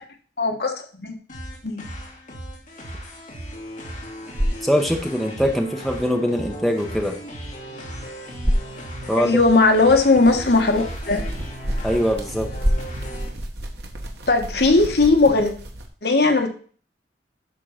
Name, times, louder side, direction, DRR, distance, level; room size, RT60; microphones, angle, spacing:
voice 1, 0.4-1.2 1.6-1.8 9.1-11.3 14.3-15.5 16.0-16.5, left 3 dB, 60° left, 4 dB, 1.3 m, -18 dB
sound 1, 1.3-13.3, equal, 45° left, 2.6 m, -36 dB
sound 2, 4.0-15.1, equal, 20° right, 1.1 m, -32 dB
voice 2, 4.6-7.2 9.1-9.4 11.8-12.5, equal, ahead, 2 dB, 1.0 m, -22 dB
sound 3, 8.6-15.9, right 1 dB, 70° right, 1.4 m, -34 dB
11.0 x 3.8 x 5.8 m, 0.43 s
head